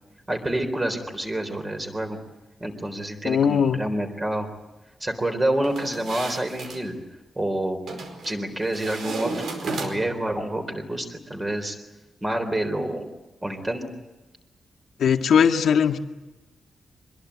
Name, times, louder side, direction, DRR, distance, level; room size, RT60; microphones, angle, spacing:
voice 1, 0.3-2.2 2.6-4.5 5.0-7.0 7.4-7.8 8.2-9.4 9.8-11.8 12.2-13.1 13.4-13.9, right 1 dB, 15° right, 5 dB, 3.8 m, -28 dB
voice 2, 3.2-3.8 15.0-16.0, left 7 dB, 80° left, 5 dB, 1.8 m, -19 dB
sound 1, 5.6-6.8 7.9-8.4 8.7-10.2, right 3 dB, 70° right, 4.9 m, -33 dB
25.0 x 21.5 x 8.6 m, 1.1 s
wide cardioid pair, 180°, 0 cm